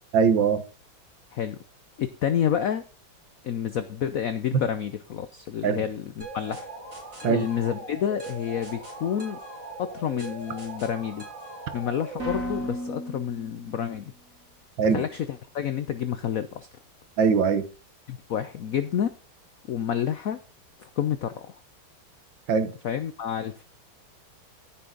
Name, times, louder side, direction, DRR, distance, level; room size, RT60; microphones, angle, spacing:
voice 1, 0.1-0.6 4.5-4.6 5.6-5.8 7.2-7.5 14.8-15.0 17.2-17.7 22.5-22.8, right 6 dB, 65° right, 1.8 m, -21 dB
voice 2, 2.0-2.8 3.4-6.7 7.2-9.4 9.8-11.3 11.7-14.1 14.9-15.3 15.5-16.7 18.1-19.1 19.7-20.4 20.8-21.5 22.8-23.6, left 9 dB, 80° left, 0.7 m, -29 dB
sound 1, 6.2-14.0, right 1 dB, 40° right, 4.5 m, -38 dB
13.5 x 6.1 x 3.9 m
omnidirectional pair, 2.3 m